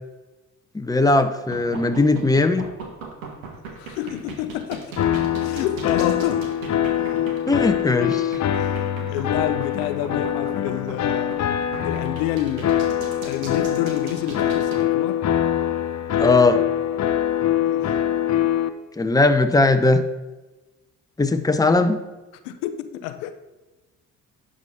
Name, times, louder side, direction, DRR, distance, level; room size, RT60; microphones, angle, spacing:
voice 1, 0.7-2.6 7.5-8.4 16.2-16.6 19.0-20.0 21.2-22.0, left 3 dB, 10° left, 0.8 m, -18 dB
sound 1, 1.3-14.8, right 5 dB, 90° right, 1.3 m, -37 dB
voice 2, 3.8-4.9 5.4-6.4 6.9-7.3 8.6-8.8 9.1-11.4 11.8-12.8 13.2-15.2 17.6-17.9 22.4-23.4, left 12 dB, 80° left, 0.7 m, -28 dB
sound 2, 5.0-18.7, left 10 dB, 45° left, 0.7 m, -23 dB
10.5 x 3.8 x 5.7 m
hypercardioid pair, 50°, 40 cm